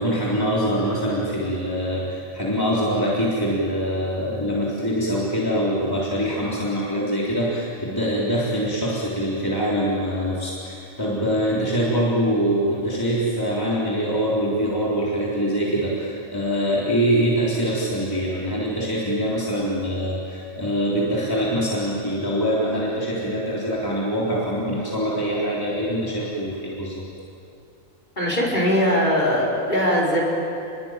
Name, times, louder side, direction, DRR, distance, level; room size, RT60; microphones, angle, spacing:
voice 1, 0.0-27.1, equal, 15° left, -6 dB, 3.8 m, -24 dB
voice 2, 28.2-30.2, equal, 35° left, -2 dB, 5.3 m, -20 dB
29.0 x 21.5 x 9.1 m, 2.6 s
omnidirectional pair, 1.4 m